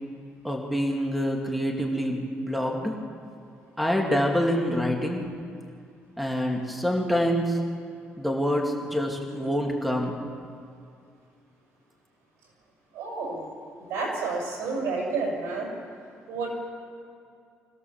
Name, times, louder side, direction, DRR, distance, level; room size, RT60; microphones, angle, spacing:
voice 1, 0.4-2.9 3.8-5.2 6.2-7.6 8.2-10.2, equal, ahead, 0 dB, 2.4 m, -26 dB
voice 2, 12.9-13.5 13.8-15.7 16.3-16.6, right 3 dB, 85° right, -1 dB, 7.0 m, -30 dB
25.5 x 16.5 x 7.2 m, 2.4 s
cardioid pair, 125°, 5 cm